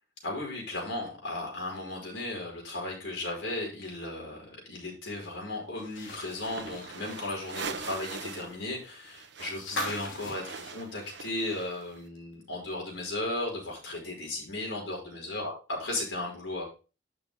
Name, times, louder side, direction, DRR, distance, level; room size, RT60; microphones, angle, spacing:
voice 1, 0.2-16.6, left 2 dB, 70° left, -1 dB, 5.3 m, -35 dB
sound 1, 5.8-11.8 12.1-12.2 13.6-13.7, left 1 dB, 90° left, 2.8 m, -41 dB
sound 2, 6.3-8.6 8.8-12.0, right 5 dB, 60° right, 1.1 m, -42 dB
11.0 x 6.4 x 3.6 m, 0.33 s
head